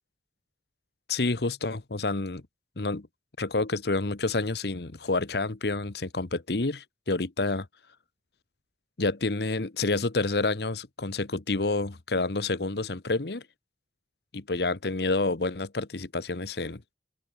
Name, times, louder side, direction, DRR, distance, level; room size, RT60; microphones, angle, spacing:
voice 1, 1.1-2.4 2.8-3.1 3.4-7.7 9.0-13.4 14.3-16.8, left 3 dB, 60° left, 1.1 m, -28 dB
open air
head